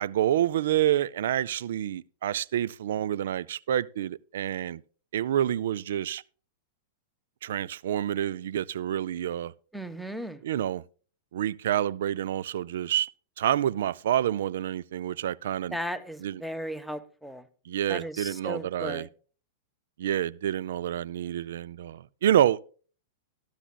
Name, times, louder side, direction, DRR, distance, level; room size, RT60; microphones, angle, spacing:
voice 1, 0.0-4.8 5.1-6.2 7.4-9.5 10.4-10.8 11.3-13.1 13.4-15.8 16.2-16.4 17.7-19.1 20.0-22.7, right 11 dB, 70° right, 0.4 m, -28 dB
voice 2, 9.7-10.4 15.7-17.4 17.9-19.1, equal, ahead, 1.2 m, -36 dB
14.0 x 12.0 x 2.3 m
hypercardioid pair, 110°, 0 cm